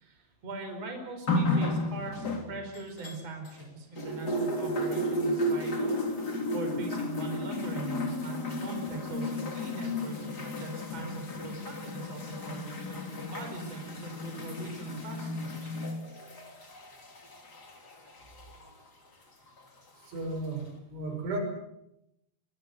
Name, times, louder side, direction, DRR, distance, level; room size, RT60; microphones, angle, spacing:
voice 1, 0.0-6.2 6.5-15.8, right 3 dB, 35° right, 5 dB, 5.8 m, -41 dB
sound 1, 1.3-3.6 4.0-18.7 19.6-19.7, left 1 dB, 25° left, 3.0 m, -33 dB
voice 2, 20.1-21.4, right 2 dB, 80° right, 4 dB, 8.4 m, -34 dB
23.5 x 22.5 x 8.0 m, 0.81 s
omnidirectional pair, 5.4 m